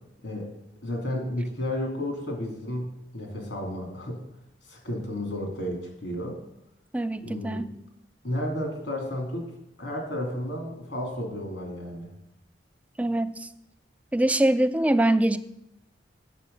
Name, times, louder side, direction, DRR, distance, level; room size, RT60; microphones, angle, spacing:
voice 1, 0.8-4.2 4.6-6.4 7.2-7.6 8.2-9.4 9.8-12.1, left 1 dB, 85° left, 1 dB, 2.9 m, -32 dB
voice 2, 6.9-7.7 13.0-13.5 14.1-15.4, right 1 dB, 10° right, 12 dB, 0.3 m, -23 dB
8.3 x 7.2 x 5.5 m, 0.83 s
head